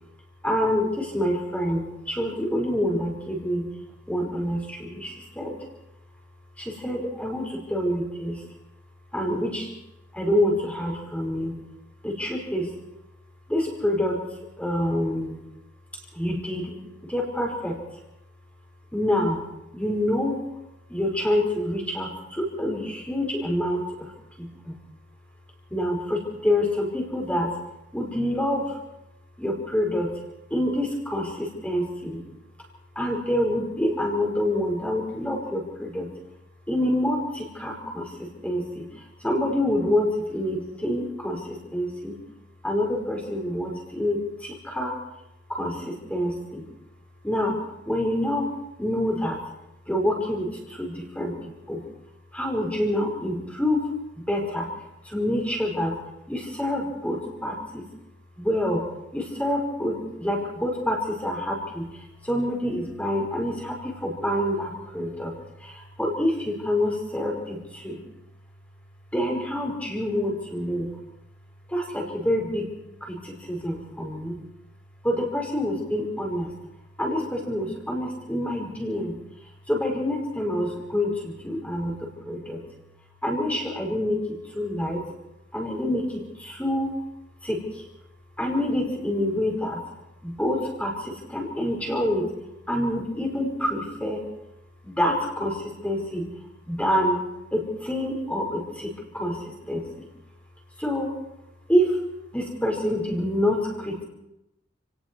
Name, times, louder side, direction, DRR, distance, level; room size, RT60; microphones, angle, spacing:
voice 1, 0.4-3.7 4.1-5.6 6.6-8.4 9.1-9.7 10.1-11.6 12.0-12.7 13.5-14.2 14.6-15.4 16.1-16.7 17.1-17.8 18.9-19.4 19.7-20.4 20.9-24.1 24.4-24.8 25.7-27.5 27.9-28.8 29.4-30.1 30.5-32.2 33.0-36.1 36.7-38.9 39.2-42.2 42.6-45.0 45.5-46.7 47.2-47.6 47.9-48.5 48.8-49.4 49.9-51.8 52.3-53.9 54.3-54.7 55.0-56.0 56.3-57.8 58.4-58.9 59.1-65.3 65.6-68.0 69.1-70.9 71.7-72.7 73.0-74.4 75.0-76.5 77.0-79.2 79.7-82.6 83.2-85.0 85.5-86.9 87.4-87.8 88.4-89.8 90.2-92.3 92.7-94.2 94.8-96.3 96.7-97.2 97.5-99.8 100.8-101.2 101.7-102.0 102.3-104.0, left 1 dB, 5° left, 0 dB, 5.5 m, -27 dB
30.0 x 18.5 x 4.8 m, 0.87 s
head